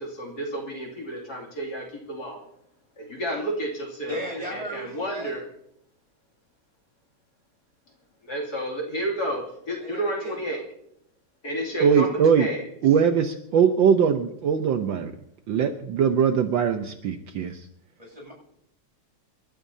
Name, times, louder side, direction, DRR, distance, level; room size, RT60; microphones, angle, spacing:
voice 1, 0.0-2.4 3.0-4.2 4.5-5.4 8.3-10.6 11.4-12.6, right 1 dB, 50° left, 0 dB, 3.3 m, -31 dB
voice 2, 4.1-5.4 9.8-10.7 18.0-18.3, right 1 dB, 15° right, -3 dB, 7.7 m, -36 dB
voice 3, 11.8-12.5 12.8-15.1 15.5-17.6, right 7 dB, 70° right, 6 dB, 1.5 m, -21 dB
27.5 x 13.0 x 2.8 m, 0.73 s
omnidirectional pair, 2.3 m